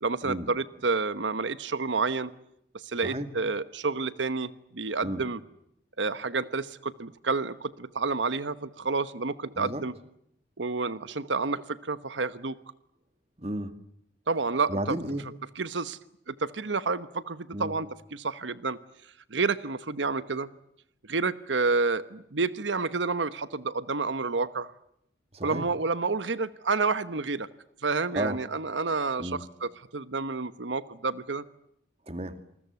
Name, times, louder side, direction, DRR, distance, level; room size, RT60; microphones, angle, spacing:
voice 1, 0.0-2.3 2.7-5.4 6.0-9.9 10.6-12.6 14.3-14.9 15.6-16.0 16.3-18.8 19.3-20.5 21.1-24.7 25.4-27.5 27.8-31.4, right 4 dB, 90° right, 14 dB, 1.1 m, -29 dB
voice 2, 13.4-13.7 14.7-15.3 17.5-17.8 25.3-25.7 28.1-28.4 29.2-29.4 32.1-32.4, right 1 dB, 35° right, 10 dB, 2.2 m, -33 dB
28.0 x 21.5 x 9.5 m, 0.76 s
head